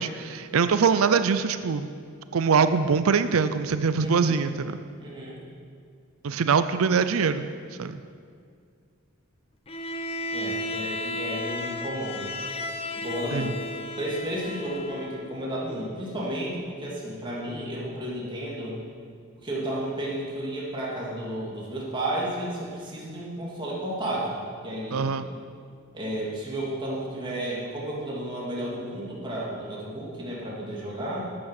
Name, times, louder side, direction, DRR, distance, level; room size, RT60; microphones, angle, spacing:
voice 1, 0.0-1.9 2.3-4.8 6.2-8.0 13.3-13.5 24.9-25.3, right 5 dB, 80° right, 11 dB, 0.5 m, -23 dB
voice 2, 4.0-4.4 5.0-5.4 10.3-12.3 12.9-13.7 14.0-18.8 19.4-25.2 25.9-31.3, right 1 dB, 25° right, -5 dB, 2.7 m, -32 dB
Bowed string instrument, 9.7-15.3, left 2 dB, 30° left, 0.9 m, -34 dB
12.0 x 8.6 x 6.6 m, 2.2 s
head